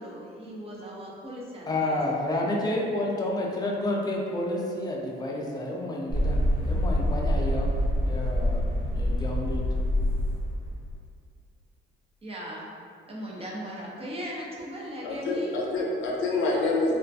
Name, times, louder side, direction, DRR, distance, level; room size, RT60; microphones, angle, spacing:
voice 1, 0.0-2.0 12.2-12.7 13.1-15.6, equal, 30° right, -4 dB, 0.5 m, -37 dB
voice 2, 1.7-6.4 6.7-7.7 8.0-8.7 9.0-9.6, left 1 dB, 20° left, -2 dB, 0.4 m, -30 dB
sound 1, 6.1-10.9, equal, 85° right, 0.9 m, -26 dB
voice 3, 15.0-17.0, left 2 dB, 85° left, -2 dB, 0.5 m, -27 dB
2.4 x 2.1 x 2.5 m, 2.3 s
cardioid pair, 90°, 20 cm